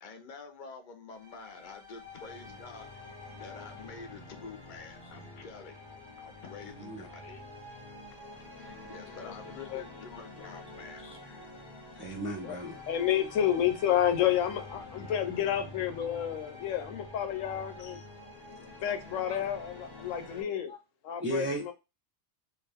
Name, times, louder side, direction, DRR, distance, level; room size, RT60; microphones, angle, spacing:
voice 1, 0.0-2.9 3.4-5.8 6.2-7.4 7.7-7.8 8.9-11.0, left 5 dB, 55° left, 0.6 m, -47 dB
sound 1, 1.1-20.4, left 2 dB, 25° left, 0.8 m, -47 dB
voice 2, 6.6-7.1 11.0-11.3 11.9-12.8 20.7-20.8 21.2-21.7, right 1 dB, 20° right, 0.3 m, -36 dB
voice 3, 12.9-18.0 18.8-20.7 21.0-21.7, left 10 dB, 90° left, 1.0 m, -30 dB
2.5 x 2.3 x 3.3 m
omnidirectional pair, 1.3 m